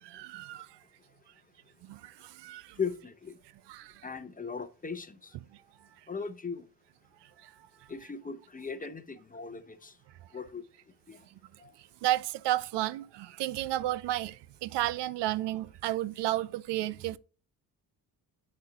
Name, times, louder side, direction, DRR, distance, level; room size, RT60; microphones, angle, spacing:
voice 1, 0.0-0.8 1.8-2.8 3.7-4.1 7.4-7.5 12.0-17.2, right 14 dB, 75° right, 0.6 m, -32 dB
voice 2, 2.8-3.4 4.0-5.3 6.1-6.6 7.9-9.9 10.3-10.6 11.1-11.2 11.6-11.7, left 5 dB, 20° left, 0.7 m, -38 dB
8.9 x 4.4 x 3.7 m
cardioid pair, 100°, 41 cm